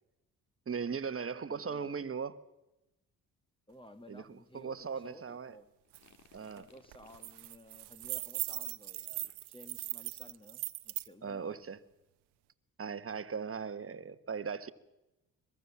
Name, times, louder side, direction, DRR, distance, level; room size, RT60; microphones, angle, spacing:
voice 1, 0.7-2.4 4.1-4.2 4.5-5.6 6.3-6.7 11.2-11.8 12.8-14.7, right 6 dB, 35° right, 1.4 m, -38 dB
voice 2, 1.5-2.1 3.7-5.7 6.5-11.7, left 1 dB, 15° left, 1.8 m, -55 dB
sound 1, 5.8-7.4 9.2-9.7, left 5 dB, 45° left, 2.3 m, -62 dB
sound 2, 5.9-6.0 6.4-6.6 6.9-11.1, right 19 dB, 75° right, 0.9 m, -40 dB
22.5 x 22.0 x 7.2 m
supercardioid pair, 60°, 40 cm